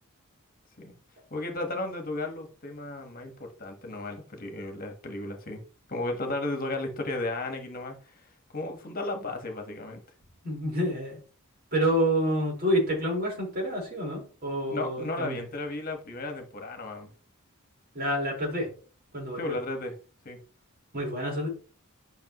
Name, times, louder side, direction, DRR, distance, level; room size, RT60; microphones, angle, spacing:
voice 1, 1.3-5.6 5.9-10.0 14.7-17.1 19.4-19.9 20.2-20.4, left 2 dB, 40° left, 4 dB, 1.5 m, -34 dB
voice 2, 10.4-11.2 11.7-15.4 17.9-18.7 19.1-19.6 20.9-21.5, equal, 45° right, -2 dB, 4.8 m, -28 dB
10.5 x 5.8 x 3.1 m, 0.38 s
head